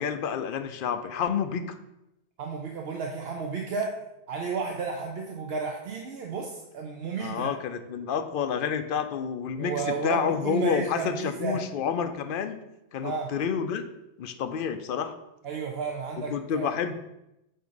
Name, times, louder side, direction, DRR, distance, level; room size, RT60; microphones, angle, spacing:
voice 1, 0.0-1.8 7.2-12.6 12.9-13.9 14.2-15.2 16.3-16.9, left 7 dB, 60° left, 9 dB, 0.6 m, -29 dB
voice 2, 2.4-3.9 4.3-7.5 9.6-11.6 13.0-13.3 15.4-16.7, right 5 dB, 65° right, 1 dB, 0.9 m, -32 dB
7.7 x 2.7 x 5.1 m, 0.88 s
omnidirectional pair, 1.2 m